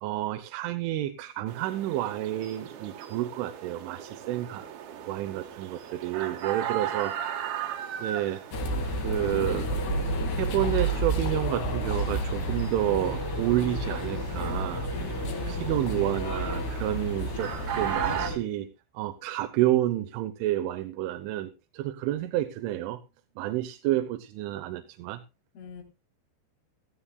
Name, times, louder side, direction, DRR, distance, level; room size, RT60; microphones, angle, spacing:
voice 1, 0.0-4.7 5.1-7.3 8.0-8.4 9.0-9.7 10.4-14.9 15.5-23.0 23.4-25.2, right 14 dB, 90° right, 8 dB, 3.2 m, -30 dB
sound 1, 1.5-18.3, right 10 dB, 65° right, 2.9 m, -38 dB
sound 2, 8.5-18.4, equal, 60° left, 3.9 m, -30 dB
voice 2, 15.2-15.8 25.6-25.8, left 7 dB, 85° left, 2 dB, 5.9 m, -44 dB
17.0 x 14.5 x 2.2 m, 0.29 s
omnidirectional pair, 5.4 m